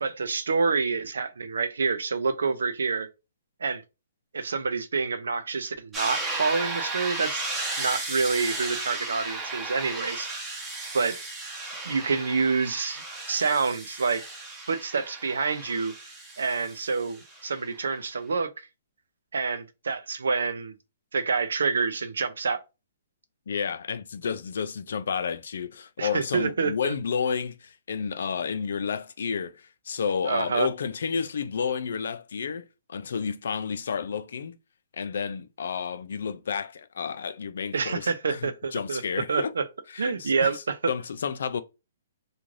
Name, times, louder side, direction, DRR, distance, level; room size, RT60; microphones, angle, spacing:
voice 1, 0.0-3.1 3.6-3.8 4.3-7.4 7.8-10.3 10.9-11.2 11.8-13.0 13.3-14.2 14.7-15.9 16.4-18.5 19.3-20.8 21.1-22.6 26.0-26.9 30.3-30.7 37.7-39.0 39.3-39.6 40.0-40.9, right 4 dB, 85° right, 0.5 m, -27 dB
sound 1, 5.9-17.6, right 2 dB, 10° right, 0.8 m, -35 dB
voice 2, 23.5-34.6 34.9-39.5 39.9-41.6, left 6 dB, 70° left, 0.4 m, -31 dB
2.5 x 2.3 x 3.1 m
hypercardioid pair, 150°, 0 cm